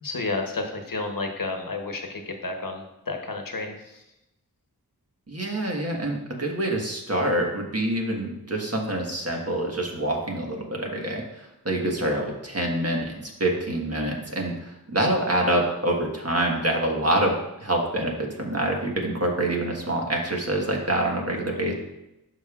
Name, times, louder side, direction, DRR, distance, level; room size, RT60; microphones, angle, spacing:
voice 1, 0.0-4.0 21.5-21.6, left 3 dB, 65° left, 3 dB, 1.1 m, -31 dB
voice 2, 5.3-21.7, right 1 dB, 40° right, 0 dB, 1.4 m, -26 dB
12.0 x 5.1 x 2.4 m, 0.89 s
wide cardioid pair, 60°, 37 cm